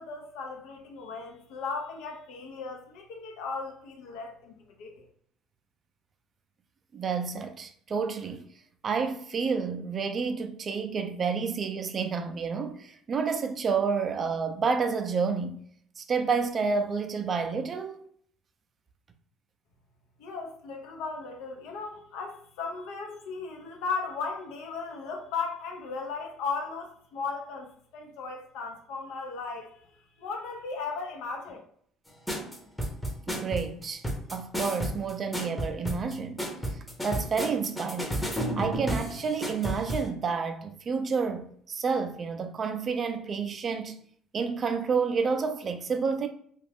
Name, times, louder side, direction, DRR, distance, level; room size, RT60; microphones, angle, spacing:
voice 1, 0.0-5.0 20.2-31.6, left 4 dB, 75° left, 0.7 m, -36 dB
voice 2, 6.9-8.5 8.8-15.6 16.0-18.1 33.3-44.0 44.3-46.3, right 5 dB, 40° right, 0.4 m, -30 dB
sound 1, 32.3-40.1, equal, 5° left, 0.8 m, -32 dB
2.4 x 2.3 x 3.4 m
supercardioid pair, 85°, 0 cm